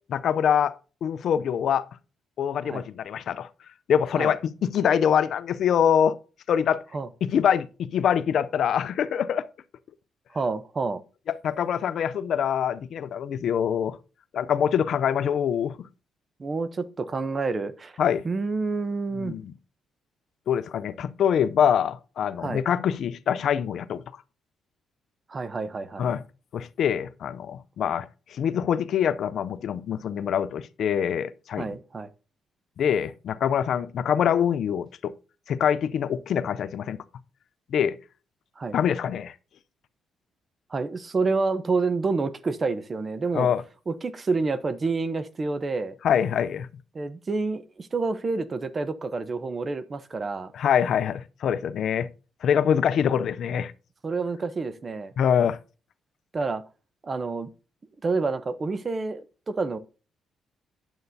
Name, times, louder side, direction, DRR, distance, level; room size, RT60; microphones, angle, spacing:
voice 1, 0.1-0.7 1.0-1.9 2.4-3.5 3.9-6.2 6.5-6.8 7.2-9.5 11.4-14.0 14.3-15.9 18.0-18.2 19.2-19.4 20.5-24.0 26.0-26.2 26.5-31.7 32.8-35.1 35.5-37.0 37.7-38.0 38.7-39.3 43.3-43.6 46.0-46.7 50.5-52.1 52.4-53.7 55.2-55.6, left 8 dB, 65° left, 0.4 m, -24 dB
voice 2, 10.3-11.0 16.4-18.0 18.2-19.3 22.4-22.6 25.3-26.1 31.6-32.1 38.6-38.8 40.7-43.5 43.9-46.0 46.9-50.5 54.0-55.1 56.3-56.6 57.0-57.5 58.0-59.8, right 3 dB, 35° right, 0.7 m, -28 dB
9.1 x 7.8 x 2.7 m
cardioid pair, 90°, 0 cm